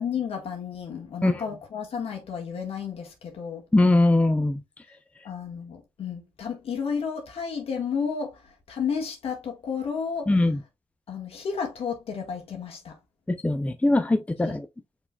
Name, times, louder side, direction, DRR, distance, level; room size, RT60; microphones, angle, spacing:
voice 1, 0.0-3.6 5.2-8.4 8.7-10.3 11.1-12.9 14.5-14.6, left 6 dB, 60° left, 1.7 m, -32 dB
voice 2, 3.7-4.6 10.3-10.6 13.4-14.7, left 2 dB, 10° left, 0.5 m, -21 dB
5.8 x 3.7 x 2.3 m
supercardioid pair, 50°, 11 cm